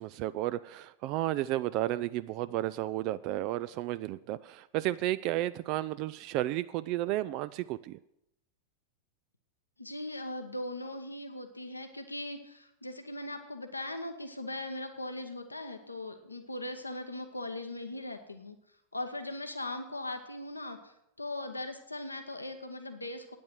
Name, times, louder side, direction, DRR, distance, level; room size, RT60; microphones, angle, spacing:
voice 1, 0.0-8.0, right 15 dB, 40° right, 15 dB, 0.3 m, -32 dB
voice 2, 9.8-18.6 18.9-23.4, left 1 dB, 85° left, 6 dB, 1.0 m, -39 dB
9.4 x 8.5 x 7.7 m, 0.82 s
figure-of-eight pair, 90°, 0 cm